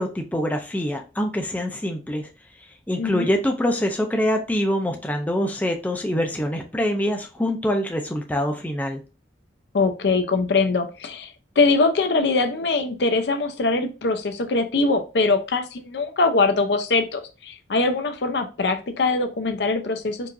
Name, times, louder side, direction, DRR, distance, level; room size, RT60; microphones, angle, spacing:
voice 1, 0.0-2.3 2.9-9.0, equal, 10° left, 3 dB, 0.4 m, -25 dB
voice 2, 3.0-3.3 9.7-20.3, left 3 dB, 65° left, 7 dB, 0.5 m, -22 dB
4.6 x 2.5 x 2.5 m, 0.32 s
head